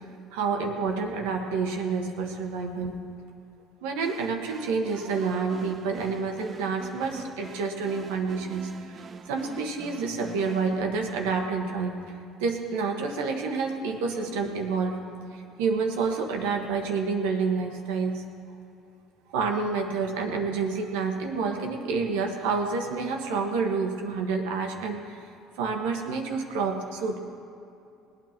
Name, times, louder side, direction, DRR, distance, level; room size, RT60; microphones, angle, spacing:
voice 1, 0.3-3.0 3.8-15.0 15.3-18.2 19.3-25.3 25.6-27.2, right 4 dB, 80° right, 3 dB, 1.5 m, -29 dB
sound 1, 4.0-10.8, right 6 dB, 40° right, 0.6 m, -45 dB
20.0 x 9.2 x 4.5 m, 2.7 s
hypercardioid pair, 75°, 0 cm